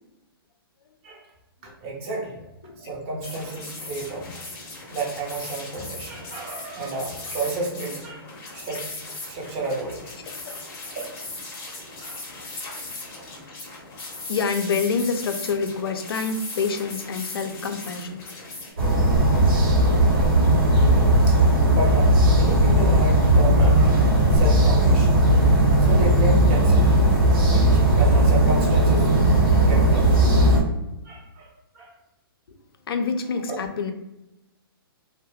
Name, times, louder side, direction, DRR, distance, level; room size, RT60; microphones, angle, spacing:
voice 1, 1.6-2.5 2.8-4.4 4.9-8.3 8.5-8.9 9.3-10.0 10.4-10.6 10.9-11.1 12.0-12.2 21.1-21.4 21.7-25.1 25.8-29.1 29.6-30.1 31.0-31.9 33.5-33.6, right 2 dB, 35° right, -1 dB, 0.7 m, -31 dB
sound 1, 3.2-18.7, left 2 dB, 25° left, 0.7 m, -38 dB
voice 2, 10.3-10.6 12.8-13.0 13.6-13.9 14.3-18.2 32.5-32.6 32.9-33.9, left 5 dB, 75° left, 6 dB, 0.4 m, -27 dB
sound 2, 18.8-30.6, right 1 dB, 65° right, 1.0 m, -17 dB
2.2 x 2.1 x 3.0 m, 0.92 s
hypercardioid pair, 150°, 13 cm